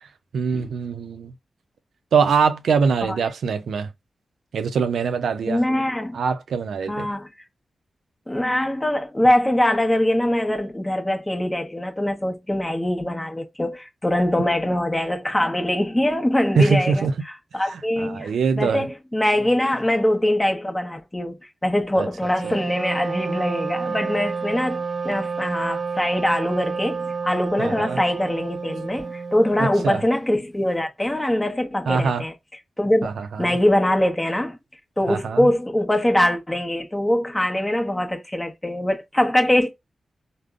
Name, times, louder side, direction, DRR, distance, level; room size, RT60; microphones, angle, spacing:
voice 1, 0.3-1.3 2.1-3.9 4.5-5.6 6.1-7.1 16.6-17.1 17.7-18.9 22.0-22.1 22.4-22.5 27.6-28.0 29.6-30.0 31.9-32.2 33.0-33.6 35.1-35.5, right 5 dB, 80° right, 0.4 m, -23 dB
voice 2, 5.5-6.2 6.9-7.3 8.3-32.3 32.8-33.1 33.4-34.6 35.0-39.7, left 1 dB, 20° left, 0.9 m, -23 dB
Wind instrument woodwind instrument, 22.3-30.1, right 5 dB, 45° right, 0.6 m, -30 dB
3.5 x 2.0 x 2.4 m
supercardioid pair, 40°, 0 cm